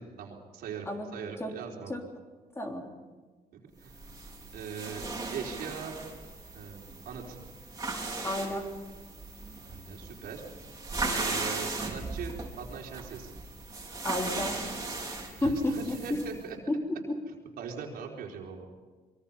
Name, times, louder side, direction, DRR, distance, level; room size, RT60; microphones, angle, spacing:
voice 1, 0.0-2.0 3.8-4.0 4.5-5.1 5.3-5.9 6.5-7.4 9.7-10.4 11.1-13.3 15.4-16.6 17.3-18.7, right 6 dB, 80° right, 0 dB, 4.3 m, -41 dB
voice 2, 2.6-2.9 8.2-8.7 14.0-14.7 15.4-16.0 16.7-17.2, left 1 dB, 15° left, 2 dB, 3.4 m, -31 dB
sound 1, 3.9-16.4, right 3 dB, 20° right, 4.9 m, -37 dB
25.0 x 23.0 x 5.6 m, 1.4 s
cardioid pair, 105°, 16 cm